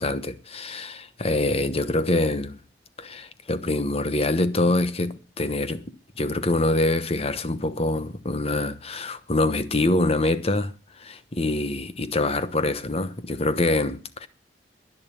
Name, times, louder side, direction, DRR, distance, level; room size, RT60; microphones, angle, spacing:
voice 1, 0.0-2.6 3.0-5.8 6.2-10.7 11.0-14.3, left 2 dB, 35° left, 1.1 m, -25 dB
11.0 x 10.5 x 7.0 m
head